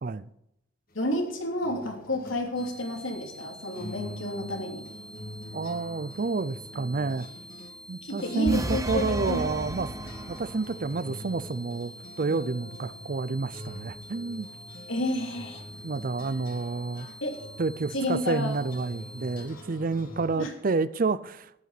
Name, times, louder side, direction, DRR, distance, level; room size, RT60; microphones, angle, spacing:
voice 1, 0.9-4.8 8.0-9.4 14.9-15.6 17.2-17.5 17.9-18.6 20.3-20.5, left 1 dB, 85° left, 3.0 m, -31 dB
sound 1, 0.9-20.4, left 1 dB, 45° left, 2.1 m, -44 dB
sound 2, 2.6-19.5, equal, 5° left, 1.9 m, -48 dB
voice 2, 5.5-7.3 7.9-9.9 10.3-14.5 15.8-17.1 17.6-21.6, right 3 dB, 45° right, 0.5 m, -29 dB
sound 3, 8.5-10.7, right 1 dB, 15° right, 0.9 m, -33 dB
13.5 x 11.0 x 4.2 m
head